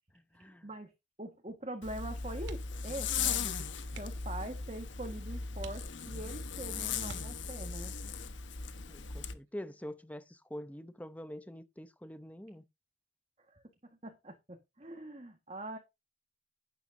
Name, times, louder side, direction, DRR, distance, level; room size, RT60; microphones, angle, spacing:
voice 1, 0.3-0.7 8.9-12.6, left 1 dB, 10° left, 0.7 m, -45 dB
voice 2, 1.2-3.7 4.0-7.9 13.5-15.8, right 1 dB, 35° right, 1.6 m, -43 dB
Zipper (clothing), 1.8-9.3, left 6 dB, 85° left, 1.2 m, -38 dB
sound 1, 2.4-2.9 3.2-3.4 3.9-4.4 5.0-5.1 5.6-6.3 7.0-7.8 9.4-9.7 10.0-10.1, right 3 dB, 85° right, 1.9 m, -51 dB
11.5 x 10.0 x 2.7 m
head